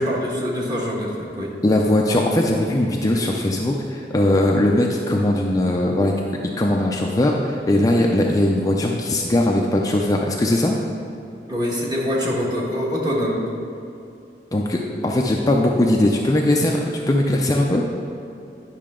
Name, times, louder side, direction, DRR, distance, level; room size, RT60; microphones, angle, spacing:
voice 1, 0.0-1.5 11.5-13.4, equal, 25° right, -4 dB, 1.4 m, -24 dB
voice 2, 1.6-6.2 6.6-10.8 14.5-16.8 17.1-17.8, left 1 dB, 20° left, -1 dB, 0.5 m, -19 dB
10.5 x 5.6 x 3.7 m, 2.6 s
head